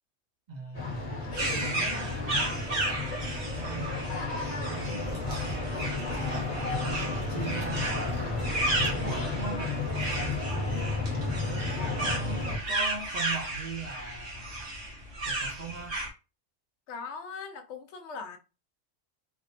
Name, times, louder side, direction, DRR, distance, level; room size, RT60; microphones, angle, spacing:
voice 1, 0.5-2.4 3.4-4.0 4.3-5.3 5.8-9.7 10.1-10.9 11.2-14.7 15.2-16.0, right 4 dB, 45° right, 0.7 m, -41 dB
sound 1, 0.7-12.6, left 3 dB, 35° left, 1.1 m, -32 dB
voice 2, 1.3-2.5 16.9-18.4, left 5 dB, 70° left, 0.8 m, -41 dB
sound 2, 1.3-16.1, right 2 dB, 90° right, 1.5 m, -34 dB
sound 3, 5.0-10.7, right 3 dB, 65° right, 1.3 m, -46 dB
3.5 x 2.0 x 2.7 m
omnidirectional pair, 1.3 m